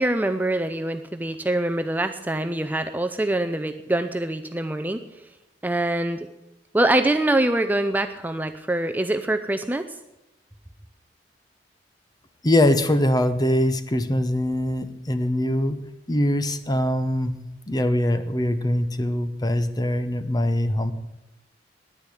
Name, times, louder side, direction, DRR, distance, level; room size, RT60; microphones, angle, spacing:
voice 1, 0.0-5.0 5.6-6.3 6.7-9.9, right 1 dB, 10° right, 8 dB, 0.5 m, -24 dB
voice 2, 12.4-17.4 17.7-20.9, left 1 dB, 20° left, 10 dB, 0.9 m, -23 dB
10.0 x 9.9 x 8.5 m, 0.96 s
head